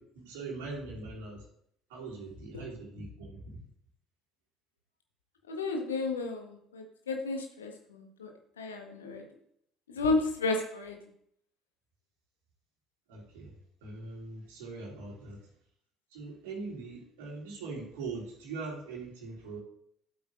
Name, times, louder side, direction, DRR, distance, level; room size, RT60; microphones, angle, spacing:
voice 1, 0.0-1.4 1.9-3.6 13.1-13.5 13.8-15.4 16.1-19.6, right 3 dB, 65° right, -4 dB, 3.0 m, -41 dB
voice 2, 5.5-8.3 8.6-9.2 9.9-11.0, left 3 dB, 75° left, 3 dB, 1.4 m, -32 dB
13.5 x 8.3 x 2.6 m, 0.69 s
figure-of-eight pair, 55°, 0 cm